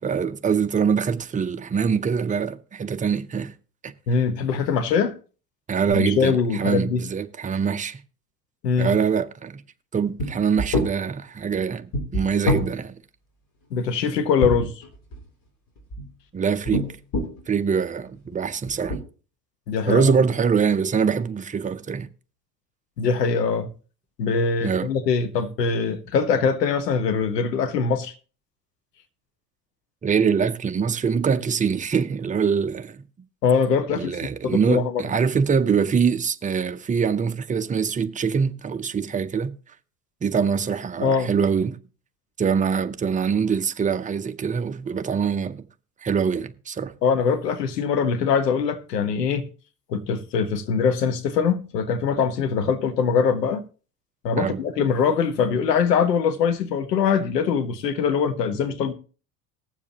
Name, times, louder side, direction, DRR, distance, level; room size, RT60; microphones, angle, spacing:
voice 1, 0.0-3.5 3.8-3.9 5.7-8.0 8.8-9.6 9.9-13.0 16.3-16.9 17.5-19.0 19.9-22.1 24.6-24.9 30.0-33.0 33.9-39.5 40.2-41.8 42.4-45.6 46.0-46.9 54.4-54.6, right 6 dB, 15° right, 0.7 m, -24 dB
voice 2, 4.1-5.2 5.9-7.0 8.6-9.0 13.7-14.8 19.7-20.1 23.0-23.7 24.2-28.1 33.4-35.0 41.0-41.3 47.0-49.5 49.9-53.6 54.2-58.9, left 6 dB, 80° left, 1.2 m, -22 dB
sound 1, 10.2-10.3 10.6-10.9 11.9-12.7 14.4-15.2 15.8-16.1 16.7-17.4 18.2-18.3 18.7-19.0, left 1 dB, 45° left, 3.4 m, -25 dB
19.5 x 7.3 x 2.9 m
hypercardioid pair, 70°, 48 cm